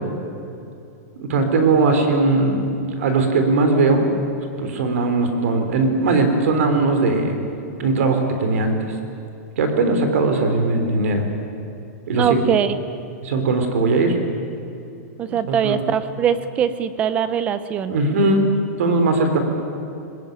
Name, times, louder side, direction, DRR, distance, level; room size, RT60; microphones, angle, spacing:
voice 1, 1.2-4.1 4.6-7.3 7.8-8.8 9.6-11.3 12.1-12.4 13.2-14.2 15.3-15.7 17.9-18.5 18.8-19.4, right 3 dB, 55° right, 6 dB, 3.6 m, -19 dB
voice 2, 12.1-12.8 15.2-17.9, right 8 dB, 15° right, 13 dB, 0.6 m, -21 dB
21.0 x 19.5 x 9.3 m, 2.6 s
supercardioid pair, 175°, 9 cm